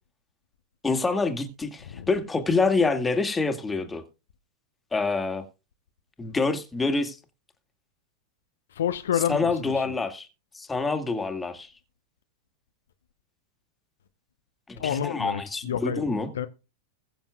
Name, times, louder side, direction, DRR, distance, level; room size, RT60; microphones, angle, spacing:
voice 1, 0.8-4.0 4.9-5.4 6.2-7.2 9.3-10.3 10.5-11.7 14.7-16.3, left 3 dB, 10° left, 2.0 m, -26 dB
voice 2, 8.7-9.8 14.8-16.0 16.3-16.5, left 9 dB, 65° left, 0.7 m, -29 dB
21.0 x 7.2 x 2.3 m
figure-of-eight pair, 90°, 0 cm